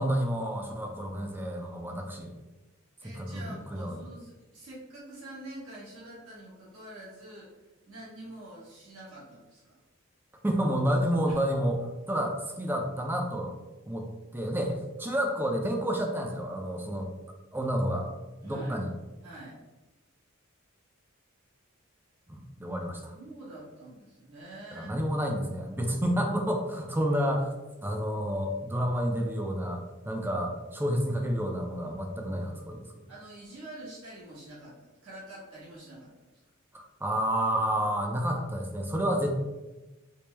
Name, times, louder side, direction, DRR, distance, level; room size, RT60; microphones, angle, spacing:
voice 1, 0.0-2.3 3.1-4.0 10.4-11.8 12.1-13.5 13.9-14.1 14.3-17.1 17.5-18.1 18.4-18.9 22.3-23.1 24.7-27.5 27.8-32.9 36.7-39.3, equal, 10° right, 2 dB, 0.4 m, -30 dB
voice 2, 3.0-7.5 7.9-9.8 11.3-11.4 18.4-18.8 19.2-19.6 23.1-25.0 33.1-36.3, right 1 dB, 80° right, -8 dB, 1.3 m, -46 dB
4.4 x 2.0 x 3.2 m, 1.1 s
head